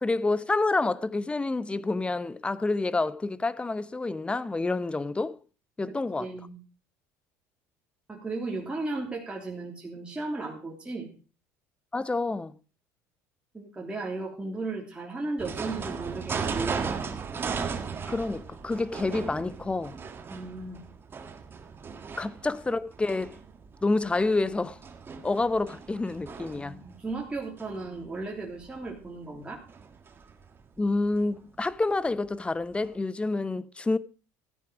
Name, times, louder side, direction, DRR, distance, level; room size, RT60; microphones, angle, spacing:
voice 1, 0.0-5.4 5.8-6.3 11.9-12.5 18.0-20.0 22.2-23.4 23.8-24.8 25.2-26.8 30.8-34.0, left 3 dB, 15° left, 0.8 m, -28 dB
voice 2, 5.9-6.6 8.1-11.1 13.5-17.0 20.3-20.8 26.5-29.6, right 3 dB, 15° right, 3.3 m, -35 dB
sound 1, 15.4-30.8 31.2-31.4 31.7-31.8 32.1-32.2 32.8-32.9, right 5 dB, 30° right, 1.7 m, -37 dB
14.0 x 9.6 x 5.0 m
supercardioid pair, 90°, 7 cm